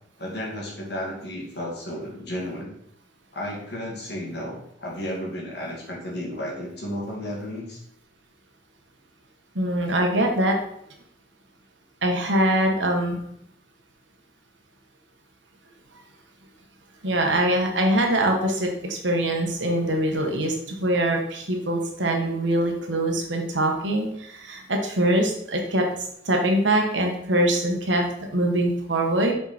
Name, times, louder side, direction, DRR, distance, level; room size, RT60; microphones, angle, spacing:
voice 1, 0.2-2.7 3.3-7.8, equal, 60° left, -2 dB, 2.2 m, -33 dB
voice 2, 9.5-10.5 12.0-13.2 17.0-25.8 26.2-29.3, right 1 dB, 75° right, 2 dB, 1.5 m, -23 dB
7.0 x 4.9 x 4.3 m, 0.71 s
head